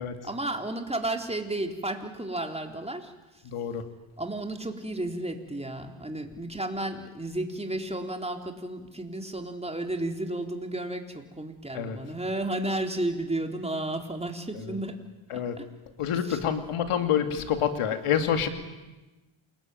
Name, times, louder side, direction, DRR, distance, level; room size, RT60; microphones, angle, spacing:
voice 1, 0.2-3.1 4.2-15.0 15.6-15.7 16.2-16.4, right 1 dB, 10° right, 4 dB, 3.9 m, -32 dB
voice 2, 3.4-3.8 11.7-12.0 14.5-14.8 15.3-15.6 16.0-18.5, left 8 dB, 85° left, 7 dB, 2.7 m, -27 dB
28.0 x 21.0 x 9.3 m, 1.1 s
cardioid pair, 70°, 50 cm